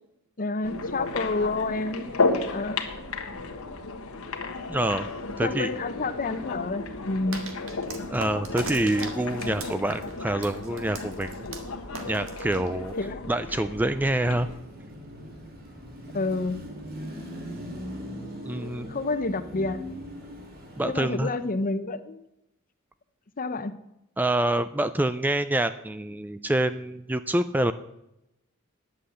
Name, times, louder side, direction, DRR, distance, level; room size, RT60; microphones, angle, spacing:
voice 1, 0.4-2.0 2.4-2.8 5.4-7.4 13.0-13.2 16.1-16.6 18.9-19.8 20.8-22.3 23.4-23.8, left 3 dB, 40° left, 12 dB, 0.8 m, -29 dB
sound 1, 0.6-14.6, left 3 dB, 85° left, 1.4 m, -33 dB
voice 2, 4.7-5.1 5.4-5.7 8.1-11.5 12.1-12.9 13.3-14.5 18.4-18.9 20.8-21.3 24.2-27.7, right 1 dB, 10° right, 12 dB, 0.3 m, -26 dB
sound 2, 7.3-13.1, right 4 dB, 65° right, 1.7 m, -40 dB
Car passing by / Traffic noise roadway noise / Engine, 14.1-21.5, equal, 45° right, 2.6 m, -40 dB
10.0 x 7.7 x 7.9 m, 0.87 s
head